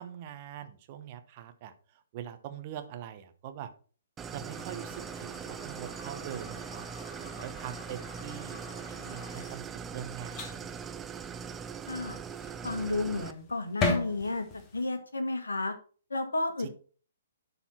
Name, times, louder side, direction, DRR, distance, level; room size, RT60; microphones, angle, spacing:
voice 1, 0.0-1.7 2.1-3.7 4.3-6.8 7.2-9.6 9.9-10.8 16.6-16.7, right 10 dB, 35° right, 8 dB, 1.0 m, -43 dB
Idling, 4.2-13.3, right 6 dB, 15° right, 0.4 m, -41 dB
sound 1, 4.5-14.9, left 3 dB, 25° left, 1.5 m, -40 dB
voice 2, 11.9-12.2 12.6-14.4 14.7-15.7 16.1-16.7, left 2 dB, 75° left, 8 dB, 1.4 m, -32 dB
11.5 x 4.2 x 4.3 m, 0.41 s
figure-of-eight pair, 125°, 0 cm